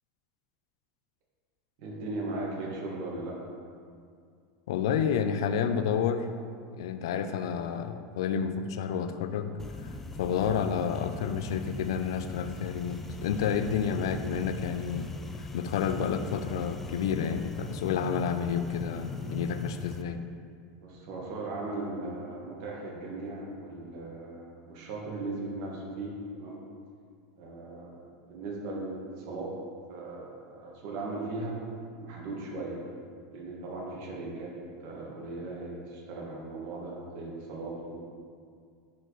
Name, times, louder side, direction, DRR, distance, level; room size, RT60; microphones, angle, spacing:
voice 1, 1.8-3.4 20.8-26.6 27.4-29.5 29.9-31.6 32.0-32.8 33.3-34.5 34.8-38.0, right 2 dB, 60° right, -3 dB, 1.8 m, -38 dB
voice 2, 4.7-6.3 6.8-9.5 9.8-9.9 10.2-20.2, left 7 dB, 85° left, 9 dB, 0.4 m, -30 dB
sound 1, 9.6-20.0, left 2 dB, 10° left, 0.4 m, -40 dB
10.0 x 4.5 x 3.2 m, 2.2 s
supercardioid pair, 140°, 2 cm